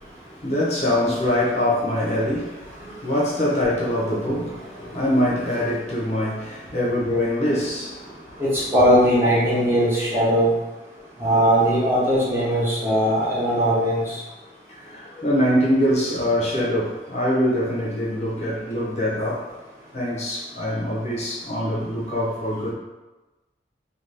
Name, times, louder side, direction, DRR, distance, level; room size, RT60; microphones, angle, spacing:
voice 1, 0.4-8.4 14.8-19.4 19.9-22.7, left 1 dB, 35° left, -5 dB, 0.6 m, -24 dB
voice 2, 8.4-10.5 11.2-14.2, equal, 15° right, -7 dB, 0.7 m, -19 dB
2.6 x 2.3 x 3.3 m, 1.1 s
head